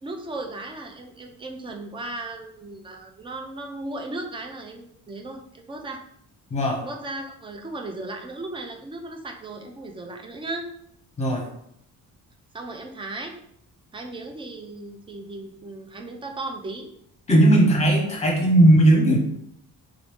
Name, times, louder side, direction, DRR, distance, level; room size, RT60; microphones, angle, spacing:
voice 1, 0.0-6.0 6.8-10.7 12.5-13.3 13.9-16.9, right 2 dB, 15° right, 3 dB, 0.3 m, -36 dB
voice 2, 6.5-6.8 11.2-11.4 17.3-19.2, right 1 dB, 20° left, 0 dB, 0.9 m, -17 dB
3.8 x 2.6 x 3.4 m, 0.72 s
cardioid pair, 170°, 33 cm